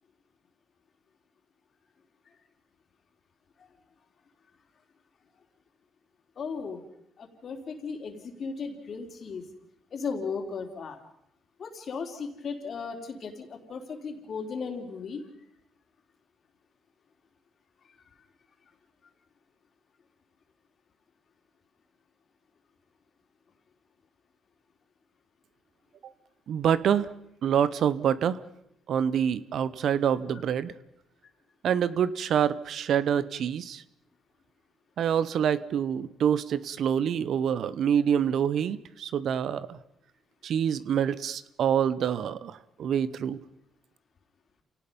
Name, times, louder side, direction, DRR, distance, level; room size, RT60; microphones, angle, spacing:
voice 1, 6.4-6.8 7.2-9.4 9.9-11.0 11.6-15.2, left 5 dB, 55° left, 4 dB, 3.8 m, -36 dB
voice 2, 26.5-27.1 27.4-28.4 28.9-30.7 31.6-33.8 35.0-39.8 40.4-43.4, right 8 dB, 70° right, 16 dB, 0.9 m, -26 dB
28.5 x 18.0 x 5.4 m, 0.74 s
cardioid pair, 90°, 0 cm